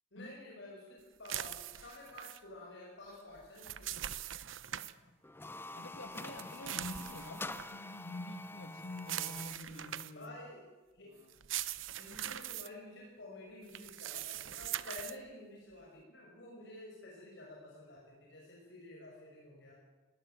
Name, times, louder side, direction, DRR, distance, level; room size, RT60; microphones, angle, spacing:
voice 1, 0.1-3.9 10.1-10.6 10.9-11.1 12.0-19.7, left 2 dB, 65° left, -3 dB, 5.9 m, -51 dB
sound 1, 1.3-2.4 3.4-4.9 6.1-7.7 9.0-10.3 11.3-12.7 13.7-15.2, right 12 dB, 90° right, 0.8 m, -41 dB
voice 2, 4.4-5.1 5.7-10.4 11.0-11.4, left 1 dB, 85° left, 9 dB, 2.1 m, -47 dB
sound 2, 5.2-9.7, left 2 dB, 10° left, 0.7 m, -46 dB
19.0 x 17.5 x 9.1 m, 1.2 s
head